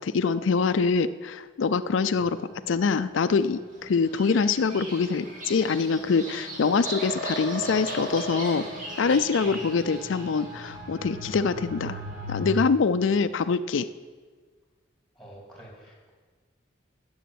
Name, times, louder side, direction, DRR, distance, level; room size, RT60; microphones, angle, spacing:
voice 1, 0.0-2.4 2.7-8.6 9.0-12.0 12.3-13.9, left 5 dB, 85° left, 11 dB, 0.4 m, -24 dB
sound 1, 2.1-12.5, equal, 65° right, 5.0 m, -42 dB
Bird vocalization bird call bird song, 3.9-10.5, right 1 dB, 45° right, 2.5 m, -37 dB
voice 2, 15.2-16.1, right 1 dB, ahead, -1 dB, 3.0 m, -48 dB
11.0 x 7.2 x 9.4 m, 1.5 s
head